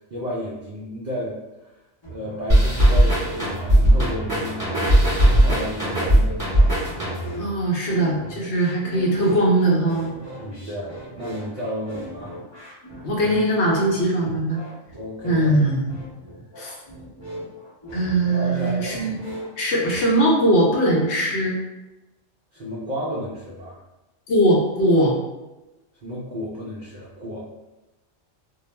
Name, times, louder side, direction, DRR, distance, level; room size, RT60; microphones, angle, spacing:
voice 1, 0.1-1.7 2.1-6.7 10.4-12.4 15.0-15.5 18.3-19.0 22.5-23.8 26.0-27.4, equal, 70° right, -6 dB, 0.4 m, -32 dB
sound 1, 2.0-20.1, equal, 30° left, 0.5 m, -39 dB
sound 2, 2.5-7.5, right 1 dB, 20° right, 1.0 m, -18 dB
voice 2, 7.4-10.1 13.0-14.6 15.2-15.8 16.6-16.7 17.9-19.1 19.6-21.6 24.3-25.1, right 1 dB, 65° left, -2 dB, 0.8 m, -20 dB
2.3 x 2.0 x 3.1 m, 1.0 s
omnidirectional pair, 1.3 m